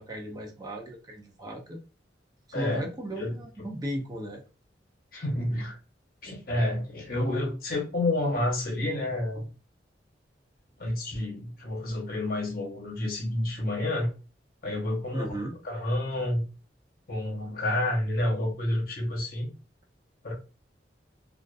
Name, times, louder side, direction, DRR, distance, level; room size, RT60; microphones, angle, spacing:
voice 1, 0.0-1.8 2.5-4.4 15.1-15.5, right 1 dB, 20° right, 0.5 m, -36 dB
voice 2, 2.5-2.9 3.2-3.3 5.1-5.8 6.2-9.5 10.8-14.1 14.6-15.3 15.6-16.4 17.1-19.5 20.2-20.3, left 1 dB, 55° left, 0.9 m, -29 dB
2.4 x 2.4 x 2.3 m
head